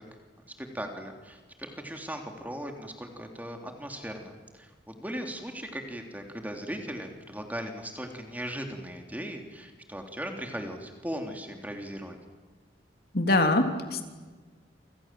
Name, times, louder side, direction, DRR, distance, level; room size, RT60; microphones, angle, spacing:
voice 1, 0.4-12.2, equal, 10° right, 4 dB, 3.2 m, -38 dB
voice 2, 13.1-14.0, left 2 dB, 55° left, 5 dB, 3.4 m, -23 dB
29.0 x 27.0 x 7.6 m, 1.4 s
head